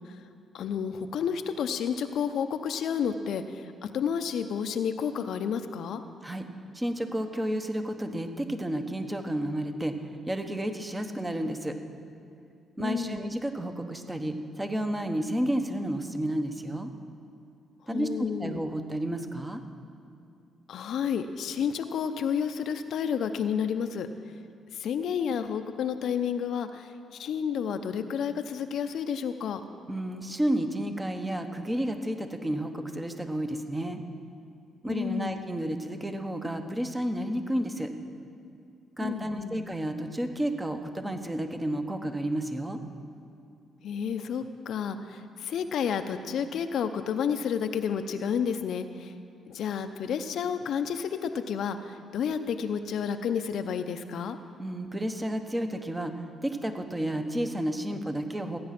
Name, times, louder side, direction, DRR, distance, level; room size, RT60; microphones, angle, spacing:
voice 1, 0.5-6.0 12.8-13.3 17.9-18.6 20.7-24.1 24.7-29.6 34.9-35.4 39.0-39.7 43.8-49.1 49.5-54.4, left 7 dB, 70° left, 8 dB, 0.7 m, -31 dB
voice 2, 6.7-10.0 10.3-11.8 12.8-16.9 17.9-19.6 29.9-34.0 34.8-37.9 39.0-42.8 54.6-58.6, right 1 dB, 15° right, 7 dB, 1.1 m, -31 dB
15.5 x 9.5 x 6.0 m, 2.5 s
cardioid pair, 90°, 0 cm